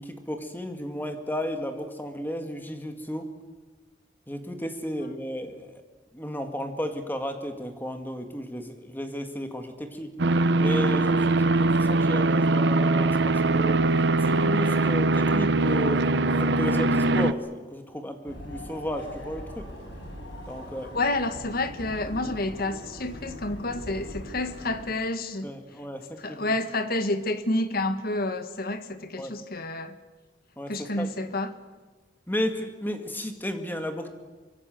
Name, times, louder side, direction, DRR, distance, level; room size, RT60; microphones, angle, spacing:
voice 1, 0.0-3.3 4.3-5.8 6.1-10.1 10.6-13.8 14.2-19.7 20.5-20.9 25.4-26.4 29.2-29.3 30.6-31.1 32.3-34.1, equal, 10° left, 2.1 m, -33 dB
sound 1, 10.2-17.3, right 2 dB, 60° right, 0.8 m, -22 dB
sound 2, 18.3-24.9, equal, 70° left, 7.4 m, -41 dB
voice 2, 20.9-25.5 26.2-29.9 30.7-31.5, left 2 dB, 50° left, 1.7 m, -29 dB
24.5 x 24.0 x 7.9 m
head